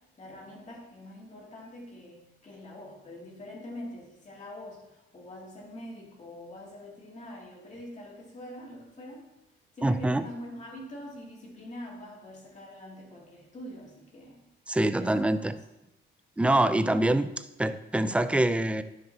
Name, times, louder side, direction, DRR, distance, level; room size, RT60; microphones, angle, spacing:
voice 1, 0.2-9.3 9.8-14.4 15.0-15.5 16.9-17.1, left 1 dB, 35° left, -4 dB, 2.5 m, -44 dB
voice 2, 9.8-10.3 14.7-15.5 16.4-17.3 17.6-18.8, right 1 dB, 5° right, 12 dB, 0.4 m, -25 dB
10.0 x 6.8 x 2.8 m, 0.93 s
cardioid pair, 90°, 20 cm